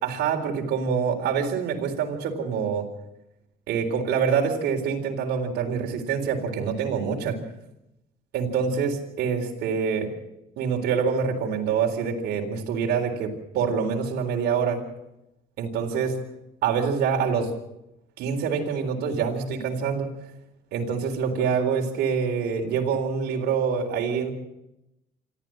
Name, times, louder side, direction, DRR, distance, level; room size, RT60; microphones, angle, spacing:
voice 1, 0.0-2.9 3.7-7.4 8.3-10.1 10.6-14.8 15.6-16.2 16.6-17.5 18.2-20.1 20.7-24.3, right 6 dB, 80° right, 2 dB, 4.0 m, -26 dB
26.5 x 13.5 x 7.7 m, 0.88 s
cardioid pair, 110°, 17 cm